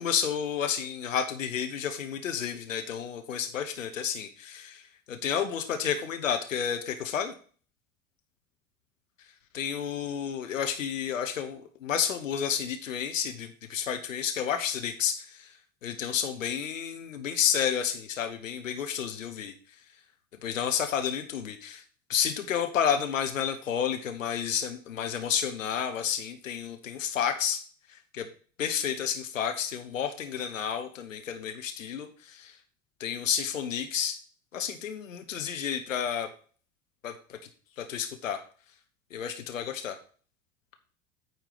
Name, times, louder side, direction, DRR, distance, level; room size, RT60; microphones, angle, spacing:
voice 1, 0.0-7.3 9.5-15.5 15.8-19.5 20.4-21.8 22.1-27.6 27.9-28.3 28.6-32.6 33.0-34.2 34.5-36.3 37.0-37.4 37.8-38.4 39.1-40.0, left 8 dB, 80° left, 6 dB, 1.0 m, -31 dB
9.3 x 4.5 x 6.6 m, 0.42 s
figure-of-eight pair, 75°, 38 cm